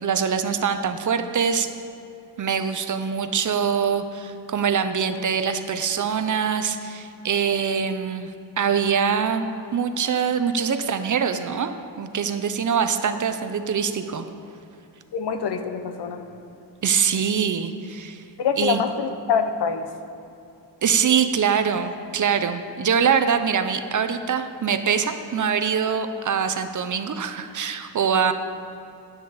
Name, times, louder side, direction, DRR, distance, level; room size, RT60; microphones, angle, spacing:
voice 1, 0.0-1.7 2.4-8.3 8.6-9.4 9.7-14.3 16.8-18.2 18.6-18.8 20.8-28.3, right 7 dB, 45° right, 9 dB, 0.6 m, -23 dB
voice 2, 15.1-16.3 18.4-19.9, left 6 dB, 65° left, 8 dB, 0.8 m, -25 dB
9.9 x 8.6 x 4.0 m, 2.7 s
cardioid pair, 95°, 43 cm